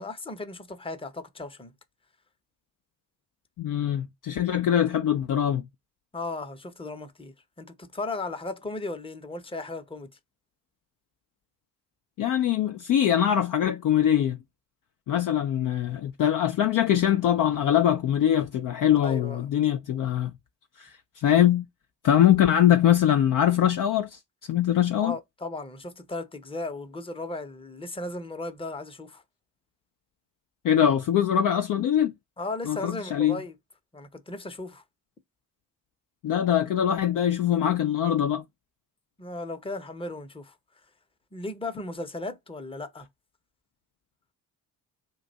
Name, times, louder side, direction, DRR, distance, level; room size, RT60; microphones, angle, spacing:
voice 1, 0.0-1.7 6.1-10.1 19.0-19.4 25.0-29.2 32.4-33.6 33.9-34.8 39.2-40.5 41.3-43.1, left 2 dB, 10° left, 0.7 m, -36 dB
voice 2, 3.6-5.6 12.2-14.4 15.1-20.3 20.8-21.7 22.0-25.1 30.6-32.1 32.7-33.4 36.2-38.4, left 10 dB, 40° left, 0.5 m, -23 dB
2.5 x 2.3 x 3.9 m
hypercardioid pair, 40°, 50 cm